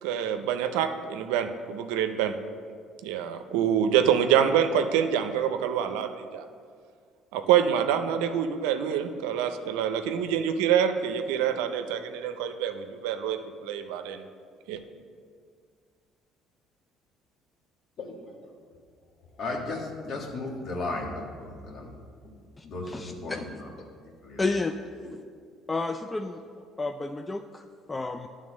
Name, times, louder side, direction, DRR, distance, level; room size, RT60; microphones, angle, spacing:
voice 1, 0.0-2.3 3.0-6.4 7.3-14.3 14.7-14.8, right 9 dB, 85° right, 8 dB, 0.5 m, -26 dB
voice 2, 18.0-18.5 19.4-21.9 22.6-23.7 24.0-24.4 25.0-25.2, left 2 dB, 55° left, 0 dB, 1.6 m, -36 dB
voice 3, 22.6-23.4 24.4-24.8 25.7-26.4 26.8-28.3, left 3 dB, 20° left, 7 dB, 0.4 m, -31 dB
10.5 x 3.8 x 6.3 m, 2.1 s
supercardioid pair, 75°, 0 cm